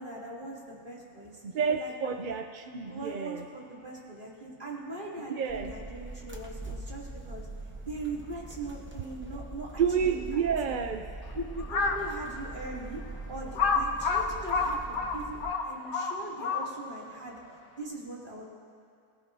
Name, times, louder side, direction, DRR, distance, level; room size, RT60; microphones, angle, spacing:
voice 1, 0.0-2.1 2.9-7.5 7.8-9.7 10.1-10.2 11.3-17.4 17.8-18.5, right 2 dB, 35° right, -5 dB, 3.1 m, -40 dB
voice 2, 1.4-3.4 5.3-5.7 9.8-11.0, right 6 dB, 50° right, 5 dB, 0.6 m, -29 dB
sound 1, 5.5-15.5, right 2 dB, 10° right, 0.8 m, -42 dB
Crow, 11.6-12.1 12.7-12.8 13.6-17.0, left 4 dB, 75° left, 1.5 m, -28 dB
27.0 x 15.5 x 2.8 m, 2.3 s
omnidirectional pair, 1.5 m